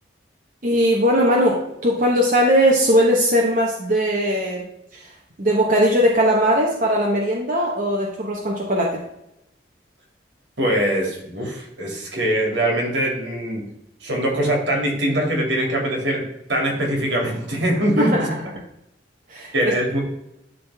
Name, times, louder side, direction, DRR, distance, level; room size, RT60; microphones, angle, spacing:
voice 1, 0.6-4.6 4.9-5.1 5.4-9.0 18.0-18.1 19.3-19.7, equal, 45° right, -2 dB, 1.1 m, -19 dB
voice 2, 10.6-13.6 14.0-16.2 16.5-18.3 19.5-20.1, right 1 dB, 75° right, 0 dB, 2.6 m, -22 dB
11.5 x 3.9 x 3.5 m, 0.83 s
head